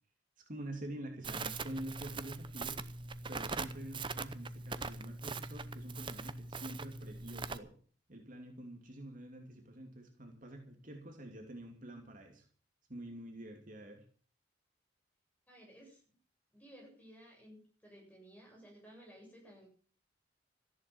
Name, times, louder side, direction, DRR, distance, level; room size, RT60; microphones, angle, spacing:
voice 1, 0.5-2.9 3.3-7.7 8.1-12.5 12.9-14.0, right 1 dB, 45° right, 3 dB, 2.8 m, -47 dB
Crackle, 1.2-7.6, right 4 dB, 25° right, 0.8 m, -41 dB
voice 2, 15.5-16.0 16.5-19.7, equal, 10° left, -1 dB, 7.7 m, -56 dB
14.0 x 11.0 x 7.1 m, 0.44 s
head